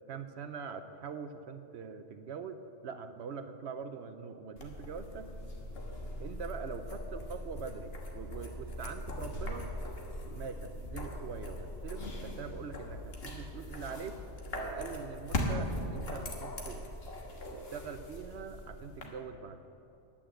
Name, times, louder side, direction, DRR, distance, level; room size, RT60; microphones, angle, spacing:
voice 1, 0.1-5.3 6.2-9.7 10.3-14.2 14.5-16.9 17.5-19.6, right 6 dB, 65° right, 9 dB, 0.9 m, -43 dB
sound 1, 4.6-19.1, left 1 dB, 50° left, 1.6 m, -40 dB
10.0 x 9.0 x 7.6 m, 2.7 s
omnidirectional pair, 1.3 m